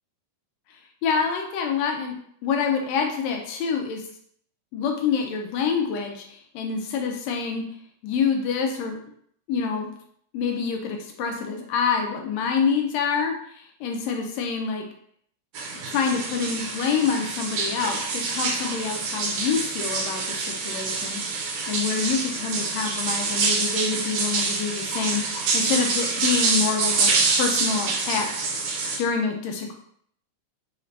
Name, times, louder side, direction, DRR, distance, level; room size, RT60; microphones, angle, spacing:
voice 1, 1.0-2.1 2.4-4.0 4.7-7.6 8.0-9.0 9.5-9.9 10.3-14.8 15.8-28.3 29.0-29.7, left 6 dB, 80° left, 3 dB, 1.6 m, -27 dB
sound 1, 15.5-29.0, right 4 dB, 90° right, 2.2 m, -26 dB
5.0 x 2.5 x 3.1 m, 0.65 s
omnidirectional pair, 3.4 m